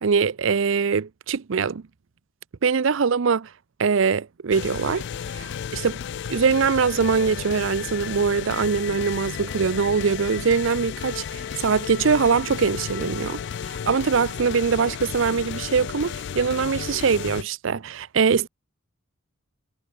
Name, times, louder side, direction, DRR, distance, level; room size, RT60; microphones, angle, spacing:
voice 1, 0.0-1.8 2.6-3.5 3.8-5.0 5.3-6.0 6.3-13.4 13.7-18.5, right 5 dB, 65° right, 0.5 m, -22 dB
sound 1, 4.5-17.4, left 7 dB, 55° left, 0.4 m, -33 dB
head